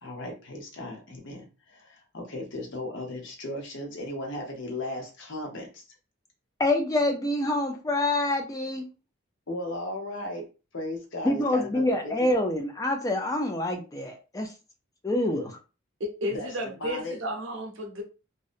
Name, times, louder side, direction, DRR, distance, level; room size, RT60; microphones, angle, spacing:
voice 1, 0.0-5.8 9.5-10.5 10.7-12.3 16.3-16.5 16.8-17.2, left 1 dB, 60° left, 1 dB, 0.8 m, -36 dB
voice 2, 6.6-8.9 11.2-14.5 15.0-15.6, left 1 dB, 15° left, 3 dB, 0.3 m, -26 dB
voice 3, 16.0-18.0, equal, 70° right, 3 dB, 0.7 m, -33 dB
2.7 x 2.0 x 2.4 m, 0.32 s
head